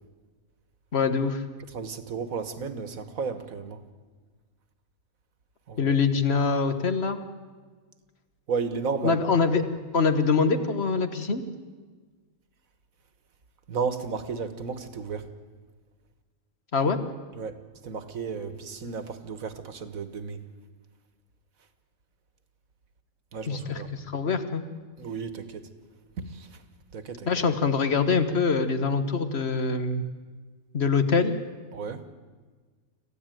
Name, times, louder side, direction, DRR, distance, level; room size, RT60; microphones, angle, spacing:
voice 1, 0.9-1.4 5.8-7.2 9.0-9.6 9.9-11.4 16.7-17.0 23.5-24.6 27.3-30.0 30.7-31.3, left 4 dB, 50° left, 9 dB, 1.6 m, -24 dB
voice 2, 1.7-3.8 5.7-5.9 8.5-9.3 13.7-15.2 17.3-17.5 17.8-20.4 23.3-23.9 25.0-25.6 26.2-26.5 26.9-27.3 31.7-32.0, right 5 dB, 75° right, 11 dB, 1.9 m, -33 dB
26.0 x 15.0 x 9.2 m, 1.5 s
omnidirectional pair, 1.5 m